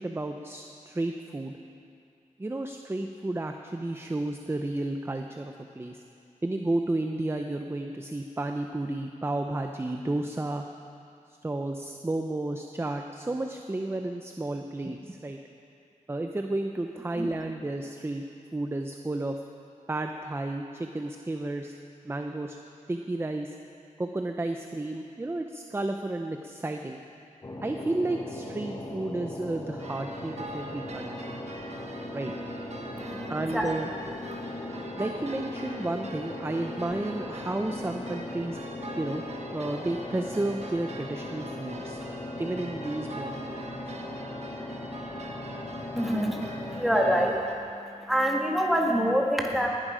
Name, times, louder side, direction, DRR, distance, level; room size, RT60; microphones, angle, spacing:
voice 1, 0.0-1.6 2.4-6.0 6.4-10.7 11.4-15.4 16.1-18.2 18.5-19.4 19.9-21.7 22.0-22.6 22.9-23.6 24.0-27.0 27.6-31.3 32.1-32.4 33.3-33.9 35.0-38.6 39.0-39.2 39.5-42.0 42.4-43.7, right 2 dB, 15° right, 5 dB, 0.6 m, -32 dB
sound 1, 27.4-47.3, left 1 dB, 25° left, 1.1 m, -38 dB
sound 2, 29.8-47.5, right 2 dB, 50° right, 1.4 m, -44 dB
voice 2, 33.0-33.7 34.3-34.4 46.0-49.7, equal, ahead, -1 dB, 1.8 m, -27 dB
19.0 x 11.5 x 5.0 m, 2.5 s
wide cardioid pair, 120°, 14 cm